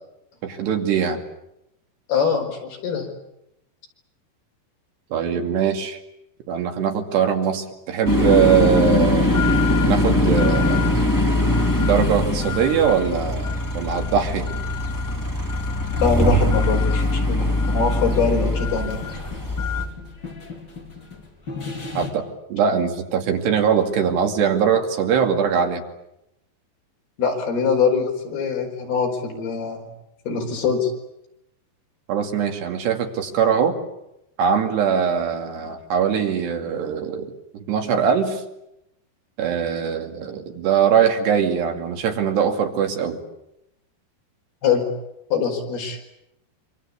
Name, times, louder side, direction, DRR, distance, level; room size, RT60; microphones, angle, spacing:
voice 1, 0.4-1.2 5.1-6.0 6.5-9.3 9.9-11.0 11.8-14.5 22.0-22.3 22.5-25.8 32.1-33.8 34.4-38.4 39.4-43.2, right 7 dB, 70° right, 4 dB, 4.6 m, -21 dB
voice 2, 2.1-3.1 16.0-19.0 27.2-29.9 30.3-30.9 44.6-44.9 45.3-46.0, left 5 dB, 60° left, 2 dB, 6.6 m, -23 dB
sound 1, 8.0-19.8, left 1 dB, 5° left, 1.9 m, -21 dB
sound 2, 9.2-22.1, left 4 dB, 25° left, 4.8 m, -42 dB
26.5 x 26.5 x 8.6 m, 0.85 s
omnidirectional pair, 5.0 m